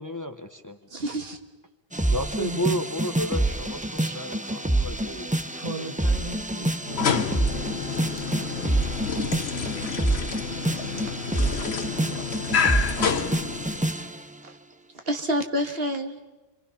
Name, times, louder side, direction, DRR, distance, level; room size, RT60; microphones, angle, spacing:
voice 1, 0.0-0.8 2.1-5.3, equal, 20° left, 7 dB, 1.1 m, -32 dB
voice 2, 0.9-1.4 4.0-4.1 11.0-11.1 11.5-11.6 14.4-14.6 15.1-16.2, equal, 70° right, 5 dB, 1.8 m, -28 dB
sound 1, 1.9-14.2, right 1 dB, 10° right, 0.7 m, -27 dB
voice 3, 2.4-2.9 5.5-8.1, right 3 dB, 40° right, 4 dB, 2.1 m, -38 dB
sound 2, 6.8-14.0, left 6 dB, 85° left, 1.3 m, -29 dB
29.0 x 24.5 x 5.8 m, 1.1 s
omnidirectional pair, 1.0 m